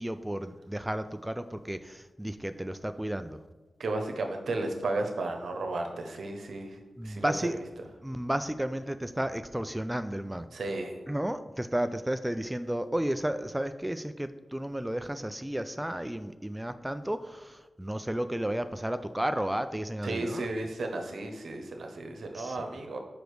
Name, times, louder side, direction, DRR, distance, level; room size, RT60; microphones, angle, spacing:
voice 1, 0.0-3.4 7.0-7.6 8.0-10.5 11.1-20.5 22.3-22.6, right 1 dB, 10° right, 10 dB, 0.3 m, -33 dB
voice 2, 3.8-7.6 10.5-11.0 20.0-23.0, right 2 dB, 80° right, 4 dB, 0.8 m, -34 dB
5.1 x 5.0 x 4.7 m, 1.2 s
cardioid pair, 60°, 0 cm